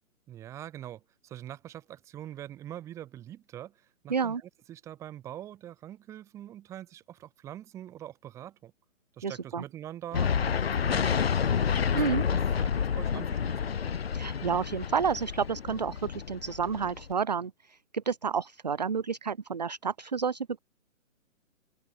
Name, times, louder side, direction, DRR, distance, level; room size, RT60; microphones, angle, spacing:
voice 1, 0.3-8.7 9.1-11.3 11.9-13.8, right 12 dB, 5° right, 2.5 m, -44 dB
voice 2, 4.1-4.4 9.2-9.6 11.9-12.2 14.1-20.6, right 6 dB, 30° right, 0.7 m, -30 dB
sound 1, 10.1-17.1, left 7 dB, 50° left, 0.4 m, -29 dB
open air
hypercardioid pair, 175°, 41 cm